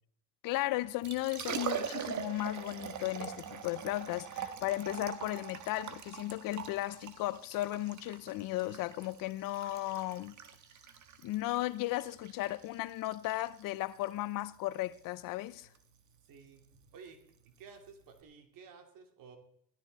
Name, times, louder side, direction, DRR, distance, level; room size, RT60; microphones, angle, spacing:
voice 1, 0.4-10.4 11.2-15.7, left 17 dB, 80° left, 0.8 m, -35 dB
Liquid, 0.8-18.2, right 8 dB, 60° right, 1.6 m, -44 dB
voice 2, 16.2-16.6 16.9-19.4, right 5 dB, 80° right, 2.9 m, -54 dB
17.0 x 13.0 x 4.1 m
supercardioid pair, 70°, 33 cm